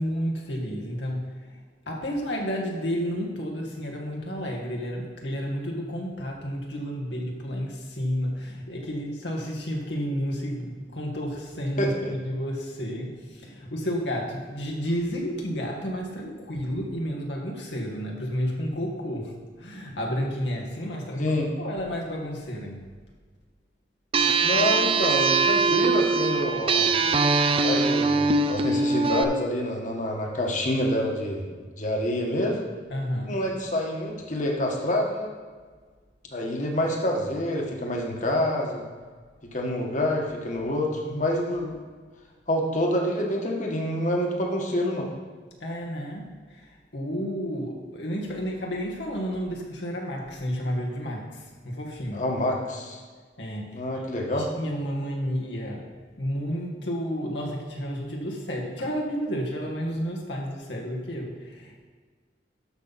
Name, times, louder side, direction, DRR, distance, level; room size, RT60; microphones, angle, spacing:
voice 1, 0.0-1.3 1.9-22.8 32.9-33.4 45.6-52.2 53.4-54.0 54.4-55.9 56.2-61.8, equal, 85° left, -1 dB, 1.9 m, -31 dB
voice 2, 11.8-12.1 21.2-21.5 24.4-26.9 27.6-31.4 31.8-32.6 33.2-35.3 36.3-38.8 39.5-41.8 42.5-45.1 52.1-53.0 53.7-54.5, left 1 dB, 45° left, 0 dB, 1.6 m, -27 dB
sound 1, 24.1-29.2, right 4 dB, 30° right, 0.5 m, -22 dB
13.0 x 5.7 x 4.2 m, 1.5 s
head